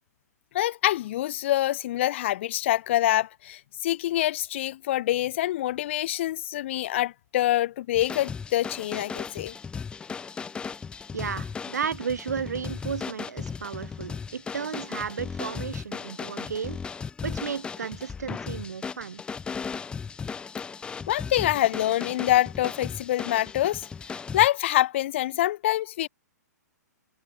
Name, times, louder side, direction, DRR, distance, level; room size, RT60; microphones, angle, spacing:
voice 1, 0.5-9.5 21.1-23.9 24.3-26.1, left 14 dB, 40° left, 0.3 m, -25 dB
sound 1, 7.9-24.5, left 5 dB, 10° left, 0.8 m, -36 dB
voice 2, 11.1-16.8 17.2-19.2, right 6 dB, 70° right, 0.5 m, -33 dB
figure-of-eight pair, 115°, 9 cm